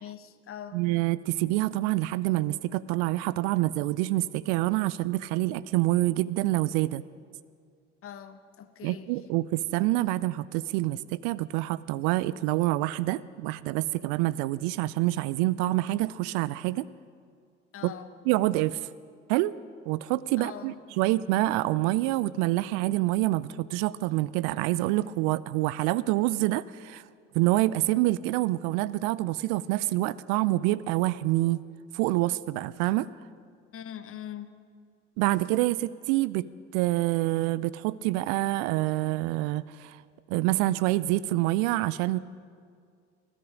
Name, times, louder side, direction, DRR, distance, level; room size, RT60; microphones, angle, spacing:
voice 1, 0.0-0.8 8.0-9.3 17.7-18.1 20.4-20.8 33.7-34.6, left 9 dB, 40° left, 10 dB, 1.1 m, -42 dB
voice 2, 0.7-7.0 8.8-16.9 18.3-18.9 19.3-19.5 19.9-27.0 27.3-31.6 31.9-33.1 35.2-36.5 36.7-40.0 40.3-42.2, right 17 dB, 55° right, 19 dB, 0.5 m, -26 dB
19.5 x 12.5 x 5.0 m, 2.2 s
figure-of-eight pair, 60°, 35 cm